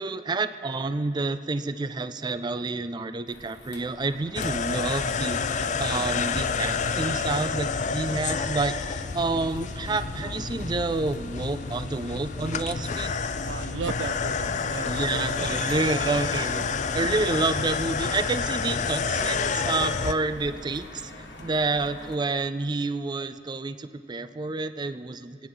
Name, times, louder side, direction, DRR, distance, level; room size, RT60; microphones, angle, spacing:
voice 1, 0.0-13.1 14.8-16.6 16.9-21.1 21.4-25.5, right 3 dB, 25° right, 11 dB, 0.4 m, -29 dB
sound 1, 3.3-22.2, left 2 dB, 75° left, 1.5 m, -45 dB
sound 2, 4.3-20.1, left 5 dB, 45° left, 0.5 m, -29 dB
voice 2, 13.4-15.6 17.1-17.3, right 5 dB, 90° right, 14 dB, 0.5 m, -35 dB
27.5 x 9.5 x 3.9 m, 2.3 s
head